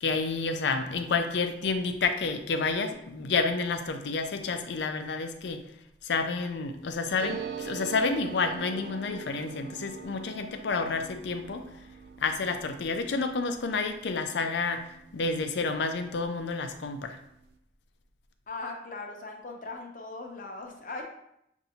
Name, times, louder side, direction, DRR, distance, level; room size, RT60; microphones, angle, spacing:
voice 1, 0.0-5.6 6.0-11.7 12.2-17.2, left 4 dB, 85° left, 7 dB, 0.5 m, -30 dB
sound 1, 7.2-16.3 16.6-16.7 16.9-17.5, right 6 dB, 70° right, 0.4 m, -43 dB
voice 2, 18.5-21.0, left 3 dB, 45° left, 2 dB, 0.7 m, -39 dB
6.7 x 2.6 x 2.7 m, 0.78 s
head